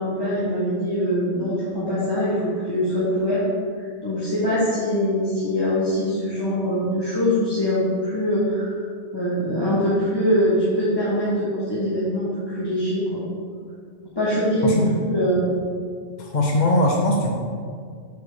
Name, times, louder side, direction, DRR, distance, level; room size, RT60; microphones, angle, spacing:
voice 1, 0.0-3.4 3.8-8.8 9.1-13.2 14.1-15.6, equal, 20° left, -10 dB, 1.3 m, -23 dB
voice 2, 16.2-17.3, left 1 dB, 45° left, -1 dB, 0.7 m, -20 dB
5.2 x 4.6 x 6.1 m, 2.2 s
omnidirectional pair, 1.2 m